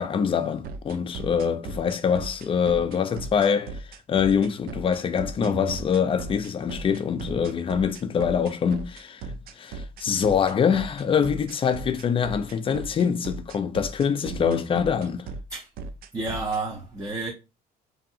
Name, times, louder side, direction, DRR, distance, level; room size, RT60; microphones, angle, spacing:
voice 1, 0.0-3.8 4.1-9.2 9.6-15.3, left 7 dB, 30° left, 0.4 m, -24 dB
sound 1, 0.6-16.6, right 3 dB, 60° right, 0.4 m, -37 dB
voice 2, 5.4-5.9 14.3-14.8 15.5-15.7 16.1-17.3, right 3 dB, 20° right, 0.6 m, -31 dB
2.7 x 2.5 x 2.7 m
cardioid pair, 110°, 17 cm